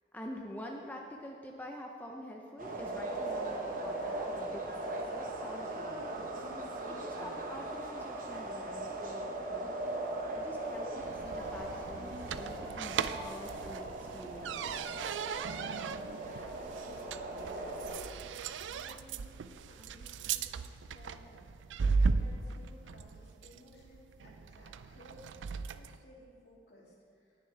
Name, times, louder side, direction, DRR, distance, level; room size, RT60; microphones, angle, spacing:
voice 1, 0.1-6.2 6.9-9.7 10.3-14.7, equal, 10° left, 0 dB, 0.5 m, -47 dB
sound 1, 2.6-18.0, right 2 dB, 45° right, 1.0 m, -39 dB
sound 2, 10.9-26.0, right 5 dB, 85° right, 0.4 m, -37 dB
voice 2, 15.9-20.5 20.9-27.4, left 1 dB, 65° left, -5 dB, 2.8 m, -58 dB
18.5 x 6.8 x 3.4 m, 2.4 s
head